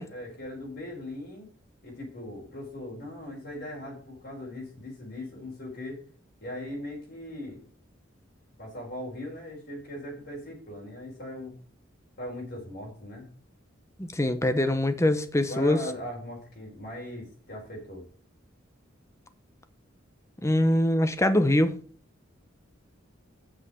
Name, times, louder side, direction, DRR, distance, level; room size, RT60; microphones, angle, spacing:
voice 1, 0.1-1.5 1.8-6.0 6.4-7.6 8.6-11.6 12.2-13.3 15.5-18.0, left 1 dB, 55° left, 4.6 m, -39 dB
voice 2, 14.0-15.8 20.4-21.8, left 1 dB, 15° left, 0.9 m, -23 dB
7.7 x 6.2 x 7.8 m
head